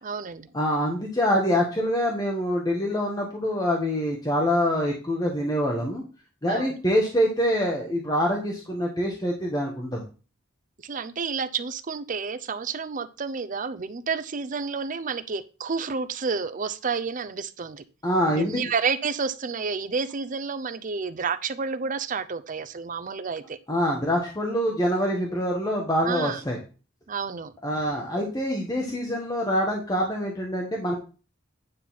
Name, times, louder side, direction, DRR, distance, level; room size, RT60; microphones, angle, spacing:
voice 1, 0.0-0.5 6.5-6.8 10.8-17.8 18.4-23.6 26.0-26.4 27.1-27.5, right 5 dB, 40° right, 13 dB, 0.6 m, -30 dB
voice 2, 0.5-6.0 6.4-10.0 18.0-18.6 23.7-26.6 27.6-31.0, equal, 20° left, -1 dB, 1.5 m, -25 dB
9.7 x 4.1 x 5.8 m, 0.34 s
head